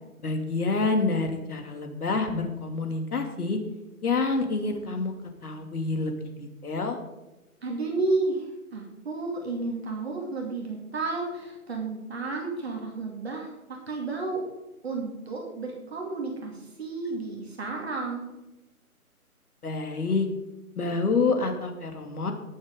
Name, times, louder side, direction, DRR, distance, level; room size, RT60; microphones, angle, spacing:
voice 1, 0.2-3.6 4.0-5.1 5.4-7.0 19.6-20.3 20.8-22.3, left 3 dB, 80° left, 5 dB, 2.7 m, -27 dB
voice 2, 7.6-14.4 14.8-18.3, right 3 dB, 45° right, -1 dB, 2.5 m, -32 dB
19.0 x 7.4 x 3.8 m, 1.0 s
hypercardioid pair, 175°, 45 cm